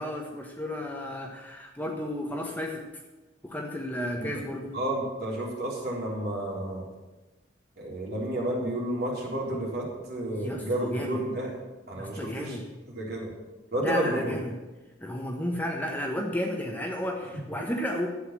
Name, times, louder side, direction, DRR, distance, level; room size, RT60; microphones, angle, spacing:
voice 1, 0.0-2.8 3.4-4.7 10.3-11.2 12.0-12.7 13.8-14.6 15.0-18.1, left 1 dB, 10° left, 1 dB, 1.2 m, -32 dB
voice 2, 4.7-6.8 7.8-11.5 11.9-12.6 12.8-13.3 13.7-14.3, right 1 dB, 55° right, -3 dB, 3.8 m, -31 dB
12.0 x 8.4 x 7.4 m, 1.1 s
head